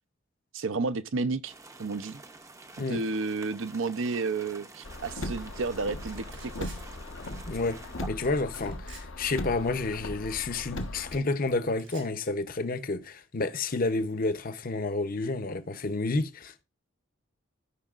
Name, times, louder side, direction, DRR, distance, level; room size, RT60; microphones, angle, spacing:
voice 1, 0.5-1.5 1.8-2.2 2.8-6.7, right 3 dB, 70° right, 0.6 m, -31 dB
sound 1, 1.5-8.1, right 3 dB, 15° right, 0.6 m, -48 dB
Car, 4.8-11.2, left 1 dB, 80° left, 1.1 m, -38 dB
sound 2, 6.0-6.8 8.2-9.1 10.8-11.4 11.8-12.1, right 5 dB, 90° right, 4.9 m, -51 dB
voice 2, 7.5-7.8 8.1-16.6, left 3 dB, 45° left, 0.7 m, -30 dB
15.5 x 5.3 x 2.4 m
head